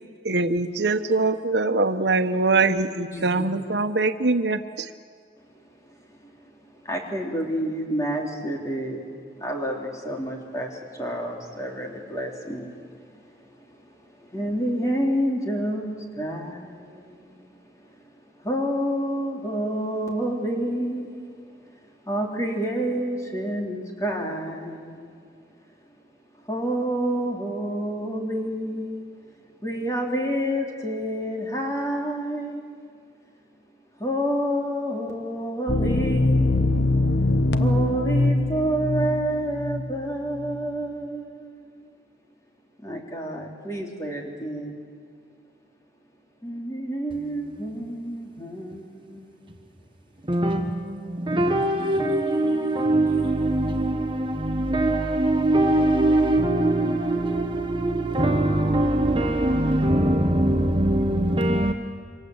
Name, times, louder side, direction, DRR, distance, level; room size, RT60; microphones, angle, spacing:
voice 1, 0.2-4.9, right 3 dB, 80° right, 1.1 m, -23 dB
voice 2, 3.1-3.5 6.2-6.3 6.6-9.0 9.4-13.8 14.2-17.5 17.8-18.1 18.4-21.5 22.0-25.2 26.5-29.0 29.6-32.7 34.0-36.9 37.6-41.9 42.8-44.8 46.4-49.7 51.8-53.2 53.5-53.6, right 1 dB, 20° left, 3.7 m, -29 dB
sound 1, 35.7-40.1 40.4-40.6, left 2 dB, 80° left, 1.2 m, -23 dB
voice 3, 50.2-61.7, right 1 dB, 30° right, 1.1 m, -22 dB
28.0 x 25.0 x 8.1 m
head